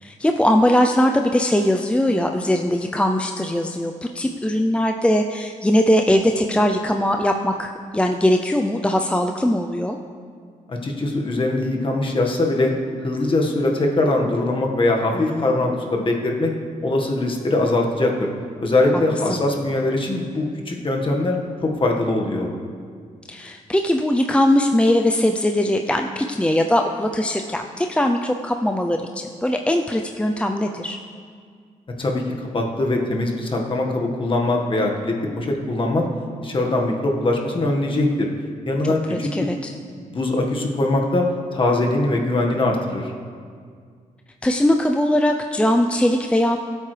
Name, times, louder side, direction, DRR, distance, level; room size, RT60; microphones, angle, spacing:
voice 1, 0.0-10.0 15.1-15.6 19.3-19.4 23.3-31.0 39.1-39.7 44.4-46.6, left 1 dB, 10° left, 4 dB, 0.6 m, -20 dB
voice 2, 10.7-12.7 13.0-16.5 16.8-18.3 18.6-22.5 32.0-36.1 36.4-38.3 38.7-39.5 39.9-43.1, left 2 dB, 40° left, 0 dB, 1.7 m, -22 dB
16.0 x 8.4 x 3.4 m, 2.1 s
cardioid pair, 80°, 14 cm